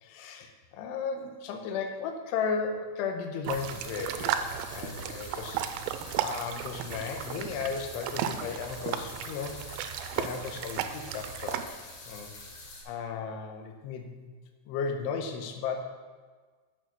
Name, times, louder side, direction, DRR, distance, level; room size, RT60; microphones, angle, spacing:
voice 1, 0.0-4.5 4.7-5.9 6.2-9.6 10.2-12.3 12.9-14.3 14.7-15.8, left 5 dB, 85° left, 5 dB, 2.5 m, -35 dB
sound 1, 3.4-11.6, right 10 dB, 85° right, 3.2 m, -35 dB
sound 2, 3.5-12.8, left 2 dB, 55° left, 3.2 m, -46 dB
8.9 x 6.2 x 6.8 m, 1.5 s
omnidirectional pair, 5.8 m